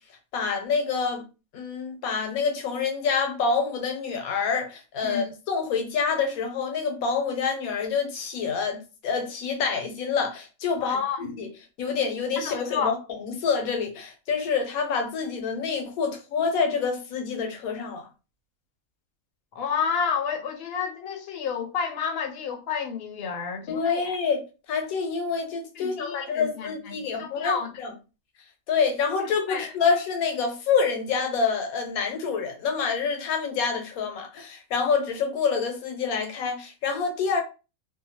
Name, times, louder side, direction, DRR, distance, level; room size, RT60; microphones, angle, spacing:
voice 1, 0.3-1.2 1.5-11.5 11.8-18.1 23.7-24.4 24.7-27.9 28.7-37.4, left 5 dB, 85° left, 1.2 m, -27 dB
voice 2, 10.8-11.2 12.4-13.0 19.5-24.2 25.8-27.7 29.5-29.7, left 6 dB, 55° left, 0.7 m, -30 dB
2.7 x 2.2 x 2.8 m
omnidirectional pair, 1.5 m